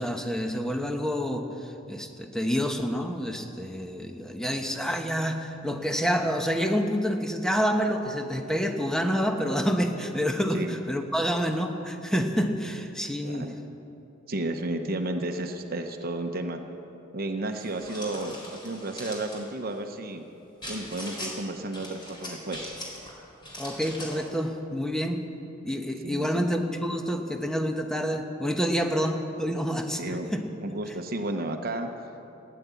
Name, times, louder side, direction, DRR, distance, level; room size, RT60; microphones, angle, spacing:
voice 1, 0.0-13.5 23.6-25.2 25.6-30.6 30.9-31.0, equal, 5° left, 4 dB, 1.1 m, -28 dB
voice 2, 13.2-13.6 14.3-16.6 17.1-20.2 20.7-22.8 26.0-26.4 30.0-30.3 30.6-31.9, right 2 dB, 50° right, 5 dB, 0.9 m, -32 dB
sound 1, 17.5-19.4 20.6-21.3 21.7-23.1 23.4-24.3, left 1 dB, 25° left, 3.8 m, -40 dB
16.5 x 10.5 x 8.3 m, 2.9 s
head